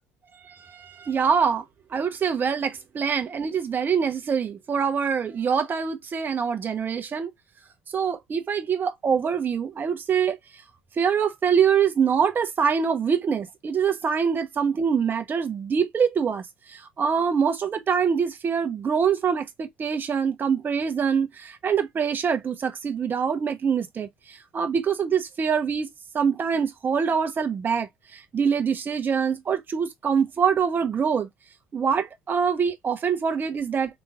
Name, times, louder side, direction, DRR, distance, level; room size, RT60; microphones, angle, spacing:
voice 1, 0.4-1.6 1.9-7.3 7.9-10.4 11.0-31.3 31.7-34.0, right 6 dB, 40° right, 1.0 m, -24 dB
5.1 x 3.0 x 2.4 m
hypercardioid pair, 70°, 5 cm